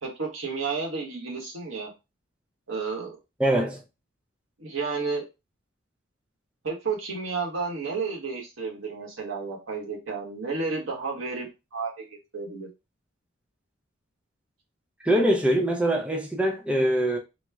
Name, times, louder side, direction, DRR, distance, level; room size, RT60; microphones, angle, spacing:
voice 1, 0.0-1.9 2.7-3.2 4.6-5.2 6.6-11.5 11.7-12.7, right 4 dB, 80° right, 1.2 m, -31 dB
voice 2, 3.4-3.8 15.0-17.2, right 1 dB, 5° right, 0.4 m, -23 dB
3.0 x 2.1 x 3.4 m
head